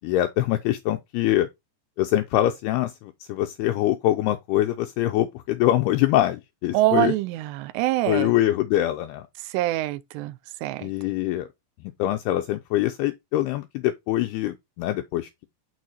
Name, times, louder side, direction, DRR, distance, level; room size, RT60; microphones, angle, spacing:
voice 1, 0.0-1.5 2.0-7.1 8.1-9.3 10.8-11.5 12.0-15.5, left 14 dB, 85° left, 2.3 m, -24 dB
voice 2, 6.7-8.3 9.5-10.3 10.6-10.9, right 17 dB, 85° right, 2.5 m, -24 dB
6.2 x 4.7 x 4.0 m
omnidirectional pair, 5.1 m